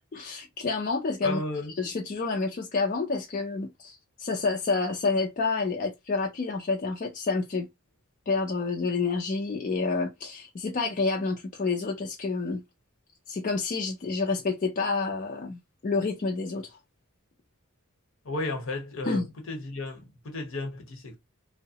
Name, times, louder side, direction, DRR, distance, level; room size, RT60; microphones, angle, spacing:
voice 1, 0.1-1.4 1.8-7.7 8.3-12.6 13.3-16.8 19.0-19.3, left 4 dB, 35° left, 0.4 m, -29 dB
voice 2, 1.2-1.7 18.2-21.2, left 2 dB, 65° left, 0.9 m, -34 dB
2.7 x 2.0 x 2.7 m
head